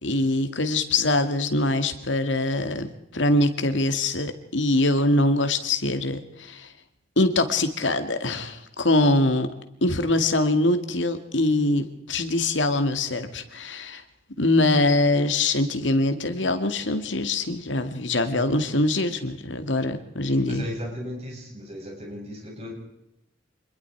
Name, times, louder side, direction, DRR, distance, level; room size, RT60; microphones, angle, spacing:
voice 1, 0.0-6.7 7.2-9.5 9.8-14.0 14.4-20.6, left 2 dB, 80° left, 8 dB, 2.3 m, -23 dB
voice 2, 20.2-22.7, left 1 dB, 35° right, -1 dB, 7.9 m, -36 dB
26.5 x 21.0 x 4.8 m, 0.82 s
head